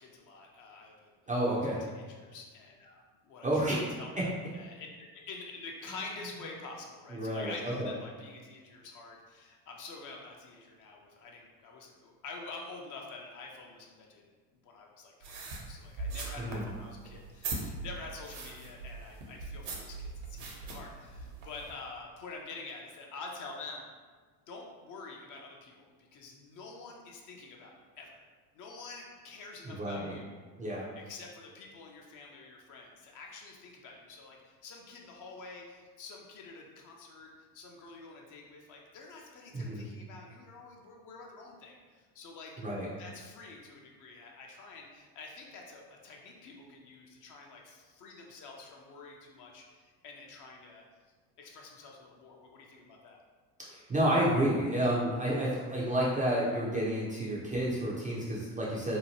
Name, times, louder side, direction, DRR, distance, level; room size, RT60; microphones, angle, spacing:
voice 1, 0.0-1.1 1.6-14.2 14.6-23.8 24.5-28.2 28.5-30.3 30.9-42.5 43.0-50.8 51.4-53.2, left 3 dB, 40° left, 0 dB, 0.5 m, -47 dB
voice 2, 1.3-1.9 3.4-3.8 4.2-4.3 7.1-7.9 16.4-16.7 29.6-30.1 30.6-30.9 39.5-39.9 42.6-42.9 53.7-59.0, right 1 dB, 15° right, -6 dB, 0.4 m, -30 dB
sound 1, 15.2-21.7, right 3 dB, 65° right, 0.8 m, -41 dB
2.9 x 2.2 x 2.8 m, 1.4 s
hypercardioid pair, 75°, 48 cm